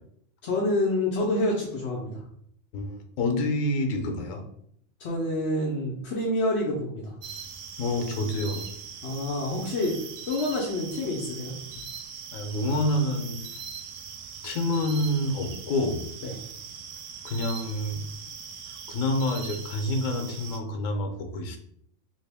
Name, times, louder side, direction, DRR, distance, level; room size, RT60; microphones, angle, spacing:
voice 1, 0.4-2.2 5.0-7.2 9.0-10.0 10.3-11.5 16.2-16.3, left 1 dB, 65° left, -4 dB, 0.9 m, -27 dB
voice 2, 2.7-4.4 7.8-8.7 12.3-13.4 14.4-16.0 17.2-18.1 18.9-21.6, left 1 dB, 90° left, 5 dB, 1.0 m, -28 dB
sound 1, 7.2-20.6, right 6 dB, 80° right, 0.9 m, -41 dB
3.0 x 2.8 x 3.4 m, 0.67 s
omnidirectional pair, 1.3 m